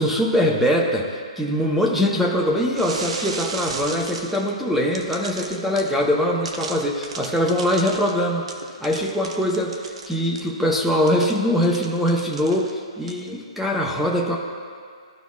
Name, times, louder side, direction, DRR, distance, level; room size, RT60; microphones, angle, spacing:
voice 1, 0.0-8.5 8.8-14.4, equal, ahead, -2 dB, 0.9 m, -22 dB
sound 1, 2.8-4.5 4.9-6.0 6.4-10.5 11.1-12.8 13.1-13.3, right 4 dB, 70° right, 0.9 m, -35 dB
14.5 x 5.1 x 2.4 m, 2.2 s
hypercardioid pair, 135°, 3 cm